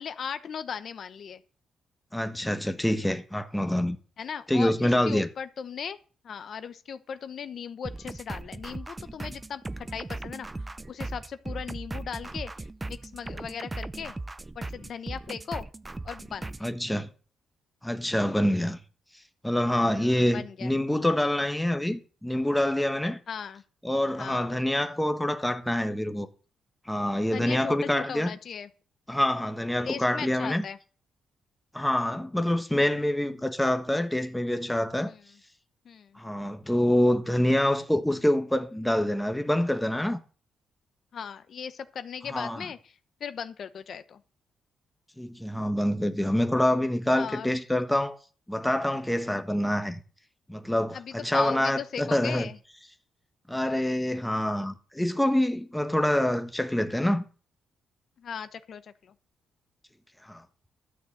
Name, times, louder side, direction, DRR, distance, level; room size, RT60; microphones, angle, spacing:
voice 1, 0.0-1.4 4.2-6.0 6.2-10.5 10.9-14.2 14.5-15.7 16.0-16.5 20.0-20.7 23.3-23.6 24.2-24.5 27.2-28.7 29.8-30.8 35.0-35.2 35.8-36.2 41.1-44.2 47.1-47.5 50.9-52.6 58.2-59.1, left 7 dB, 60° left, 0.9 m, -38 dB
voice 2, 2.1-4.0 4.5-5.3 16.6-17.1 17.8-18.8 19.4-23.2 23.8-26.3 26.9-28.4 29.1-30.6 31.7-35.1 36.2-40.2 42.3-42.6 45.2-48.2 48.5-50.0 50.5-52.5 53.5-57.3 60.2-60.4, left 1 dB, 5° left, 1.3 m, -26 dB
sound 1, 7.8-16.8, right 2 dB, 20° right, 0.6 m, -38 dB
12.5 x 6.5 x 7.6 m
cardioid pair, 95°, 0 cm